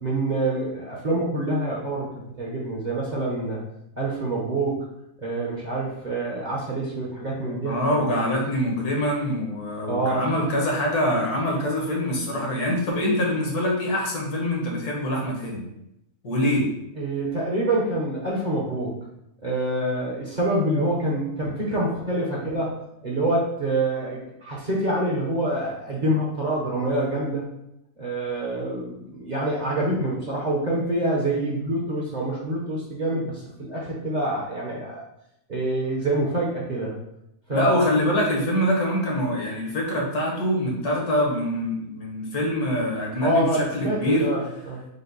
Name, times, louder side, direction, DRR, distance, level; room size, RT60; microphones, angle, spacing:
voice 1, 0.0-3.6 4.0-4.9 5.2-8.1 9.9-10.3 12.3-12.4 16.9-19.0 19.4-22.7 23.0-27.4 28.0-35.0 35.5-36.9 37.5-37.9 43.2-44.8, right 1 dB, 40° right, -4 dB, 0.7 m, -26 dB
voice 2, 7.6-15.6 16.2-16.6 20.7-20.8 37.5-44.3, equal, 80° left, -2 dB, 1.7 m, -24 dB
5.2 x 2.2 x 3.9 m, 0.83 s
omnidirectional pair, 1.6 m